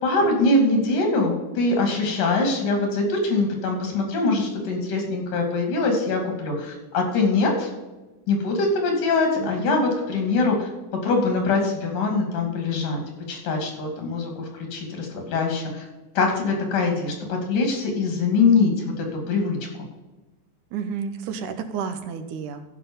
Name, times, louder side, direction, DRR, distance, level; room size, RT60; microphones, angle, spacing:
voice 1, 0.0-7.7 8.3-10.7 11.0-13.0 13.3-15.9 16.2-19.6, left 3 dB, 90° left, 2 dB, 4.1 m, -23 dB
voice 2, 9.4-9.9 20.7-22.7, right 6 dB, 80° right, 8 dB, 2.4 m, -31 dB
14.0 x 5.7 x 5.5 m, 1.1 s
omnidirectional pair, 3.6 m